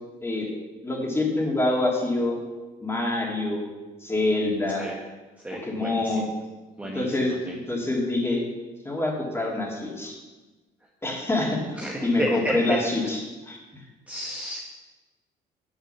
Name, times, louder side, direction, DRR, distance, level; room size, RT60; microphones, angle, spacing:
voice 1, 0.8-2.4 2.8-3.7 4.0-4.9 5.5-6.3 6.9-8.4 8.8-10.2 11.0-11.6 12.0-13.8, left 2 dB, 15° left, -1 dB, 3.0 m, -26 dB
voice 2, 5.4-6.2 6.8-7.5 11.8-12.5 14.1-14.6, right 1 dB, 10° right, -3 dB, 1.4 m, -32 dB
9.1 x 7.9 x 7.2 m, 1.2 s
cardioid pair, 110°, 17 cm